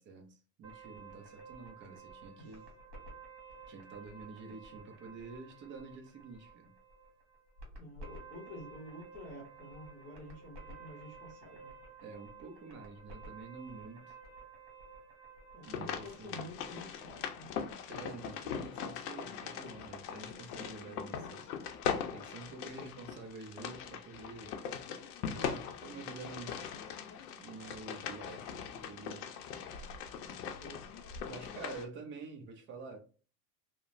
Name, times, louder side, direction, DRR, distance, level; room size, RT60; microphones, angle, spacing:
voice 1, 0.0-2.7 3.7-6.7 12.0-14.2 15.7-16.5 17.9-21.5 22.1-24.6 25.3-26.7 27.4-29.3 31.3-33.0, right 4 dB, 25° right, 0.5 m, -48 dB
sound 1, 0.6-17.7, right 4 dB, 55° right, 1.4 m, -53 dB
voice 2, 7.8-11.7 15.5-17.5 22.4-23.0 30.1-30.9, left 1 dB, 15° left, 0.8 m, -50 dB
sound 2, 15.6-31.9, left 7 dB, 70° left, 0.7 m, -41 dB
2.9 x 2.1 x 2.5 m
hypercardioid pair, 115°, 48 cm